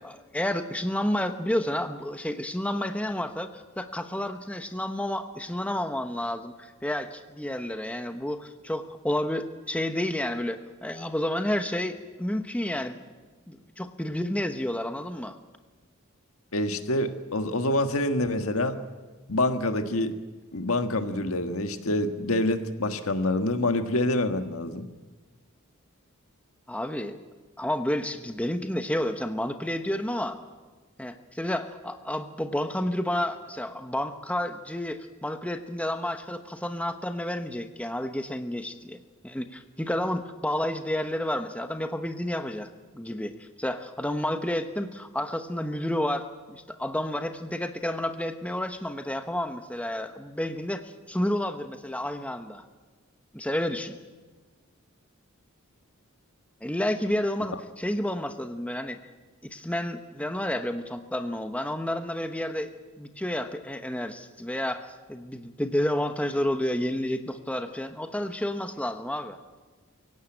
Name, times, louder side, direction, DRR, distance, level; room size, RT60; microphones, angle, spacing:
voice 1, 0.0-13.0 13.5-15.4 26.7-27.2 27.6-30.4 31.0-42.7 42.9-52.6 53.3-54.0 56.6-59.0 59.5-62.7 63.0-69.4, left 1 dB, 5° left, 7 dB, 1.1 m, -30 dB
voice 2, 16.5-18.8 19.3-20.1 20.5-24.9, left 1 dB, 75° left, 7 dB, 1.7 m, -26 dB
23.5 x 17.0 x 9.0 m, 1.3 s
head